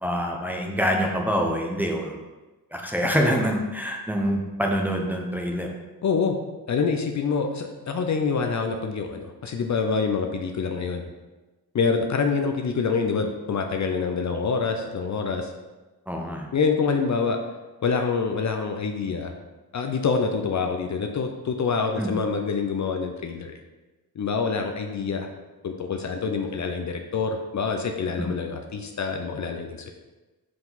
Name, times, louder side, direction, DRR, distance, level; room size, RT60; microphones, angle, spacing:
voice 1, 0.0-2.1 2.7-5.7 16.1-16.5 22.0-22.1 28.2-28.4, equal, 5° right, 0 dB, 0.7 m, -25 dB
voice 2, 6.0-6.4 6.7-11.0 11.7-15.5 16.5-17.4 17.8-19.3 19.7-23.6 24.2-25.3 25.6-29.9, left 5 dB, 50° left, 4 dB, 0.6 m, -26 dB
5.6 x 4.8 x 4.0 m, 1.2 s
wide cardioid pair, 130°, 38 cm